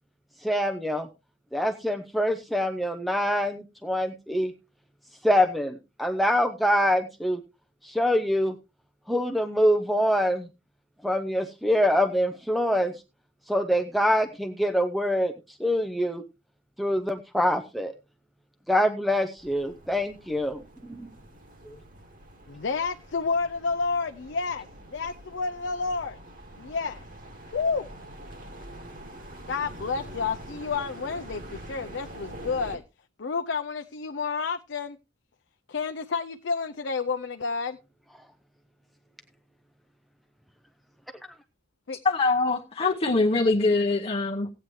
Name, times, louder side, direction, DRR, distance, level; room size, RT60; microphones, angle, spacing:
voice 1, 0.4-1.1 1.5-4.5 5.2-7.4 7.8-8.5 9.1-10.5 11.0-12.9 13.5-15.3 15.6-16.2 16.8-17.9 18.7-21.1 21.7-21.8, equal, ahead, 0.5 m, -25 dB
sound 1, 19.4-32.8, right 1 dB, 45° right, 2.0 m, -45 dB
voice 2, 22.5-26.2 26.5-27.0 27.5-27.8 29.5-32.8 33.2-35.0 35.7-37.8 41.9-42.0, left 4 dB, 65° left, 0.5 m, -30 dB
voice 3, 42.0-44.5, left 3 dB, 30° left, 0.9 m, -23 dB
16.0 x 9.0 x 3.1 m
head